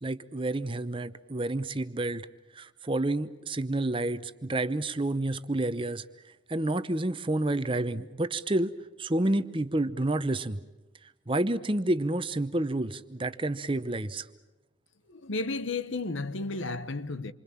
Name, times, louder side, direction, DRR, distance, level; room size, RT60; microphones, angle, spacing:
voice 1, 0.0-2.3 2.5-6.0 6.5-8.7 9.0-10.6 11.3-14.3, right 1 dB, 25° right, 0.8 m, -29 dB
voice 2, 15.1-17.3, left 3 dB, 70° left, 1.1 m, -33 dB
28.0 x 25.0 x 7.3 m
head